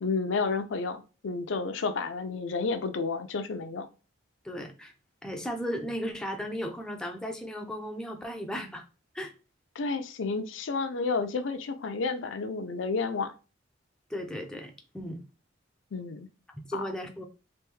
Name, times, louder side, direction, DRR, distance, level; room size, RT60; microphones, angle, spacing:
voice 1, 0.0-3.9 9.8-13.3 15.9-16.3 16.7-16.9, left 4 dB, 70° left, 0.5 m, -31 dB
voice 2, 4.4-4.9 5.2-8.8 9.1-9.3 14.1-15.2 16.5-17.2, equal, 5° left, 0.4 m, -36 dB
3.4 x 2.6 x 3.2 m
head